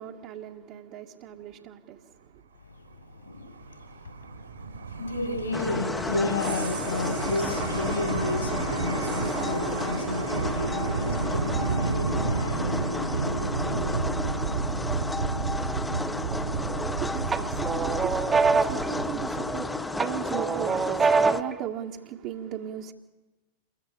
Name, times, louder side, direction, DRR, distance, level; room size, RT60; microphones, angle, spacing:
voice 1, 0.0-2.4 17.0-22.9, right 9 dB, 45° right, 1.8 m, -37 dB
voice 2, 2.6-14.8, left 2 dB, 75° left, 6.8 m, -33 dB
sound 1, 3.3-19.8, right 4 dB, 70° right, 3.5 m, -31 dB
sound 2, 5.5-21.4, left 2 dB, 10° left, 1.2 m, -33 dB
sound 3, 16.3-16.9 17.3-19.6 20.0-21.6, right 5 dB, 15° right, 1.4 m, -25 dB
28.5 x 22.5 x 8.6 m
figure-of-eight pair, 90°, 0 cm